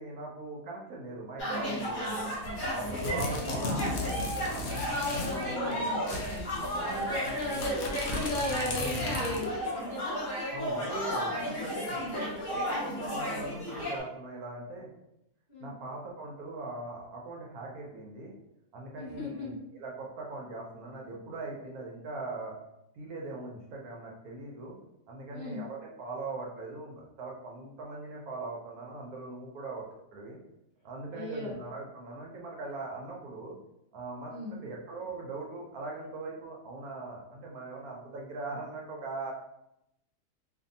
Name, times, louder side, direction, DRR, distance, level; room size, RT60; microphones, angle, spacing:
voice 1, 0.0-2.3 2.7-4.7 5.1-5.9 6.6-7.7 10.5-14.9 15.6-18.3 18.7-22.5 23.0-24.8 25.1-29.8 30.1-30.4 30.8-33.6 33.9-39.3, right 3 dB, 70° right, -2 dB, 1.0 m, -41 dB
sound 1, 1.4-14.0, equal, 40° left, 1.1 m, -34 dB
sound 2, 2.4-5.4 5.7-5.8 6.0-9.6, left 2 dB, 80° left, 0.6 m, -36 dB
voice 2, 4.9-6.0 6.8-10.2 11.4-11.6 12.0-12.2 15.5-15.7 18.9-19.5 25.3-25.6 31.1-31.5 34.3-34.6, left 1 dB, 25° right, -10 dB, 0.7 m, -36 dB
2.6 x 2.5 x 2.6 m, 0.83 s
omnidirectional pair, 1.7 m